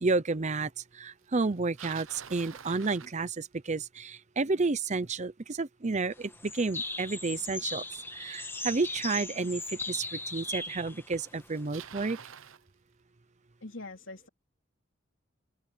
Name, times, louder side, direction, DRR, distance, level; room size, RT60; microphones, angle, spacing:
voice 1, 0.0-7.8 8.1-9.6 9.9-12.2, right 3 dB, 35° right, 0.7 m, -31 dB
Bicycle, 1.4-3.8 8.8-8.9 9.8-9.9 10.9-11.0 11.2-12.6, right 8 dB, 90° right, 0.9 m, -47 dB
sound 1, 6.1-11.9, left 2 dB, 10° left, 1.4 m, -38 dB
voice 2, 13.6-14.3, left 2 dB, 80° left, 3.3 m, -43 dB
open air
head